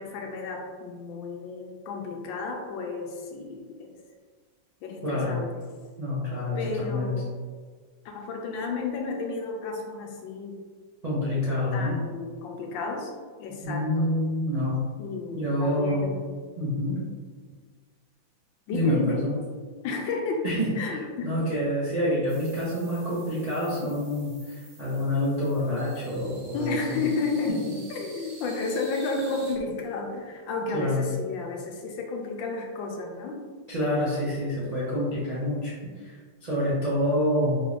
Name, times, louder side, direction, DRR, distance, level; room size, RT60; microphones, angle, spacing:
voice 1, 0.0-3.9 4.8-5.6 6.6-7.3 8.0-10.6 11.7-13.1 13.4-14.1 15.0-16.3 18.7-19.2 19.8-20.5 20.8-21.3 23.8-24.0 26.5-27.6 27.9-33.4, left 4 dB, 80° left, 2 dB, 1.3 m, -32 dB
voice 2, 5.0-5.4 6.0-7.2 11.0-12.0 13.6-14.8 15.3-16.1 16.6-17.0 18.7-19.4 20.4-27.0 30.7-31.0 33.7-35.7 36.0-37.6, left 1 dB, 75° right, -9 dB, 0.3 m, -27 dB
sound 1, 22.3-29.5, right 2 dB, 50° right, 0.8 m, -49 dB
3.7 x 3.2 x 2.4 m, 1.5 s
omnidirectional pair, 2.1 m